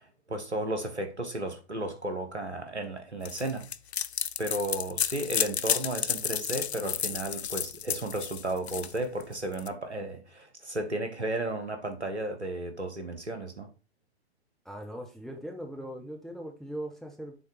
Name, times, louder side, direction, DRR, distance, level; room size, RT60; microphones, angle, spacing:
voice 1, 0.0-3.7 4.4-13.7, right 1 dB, 90° right, 1.5 m, -34 dB
sound 1, 3.3-9.7, left 9 dB, 75° left, 0.5 m, -32 dB
voice 2, 14.6-17.4, right 1 dB, ahead, 0.9 m, -40 dB
7.1 x 3.4 x 4.9 m
figure-of-eight pair, 115°, 33 cm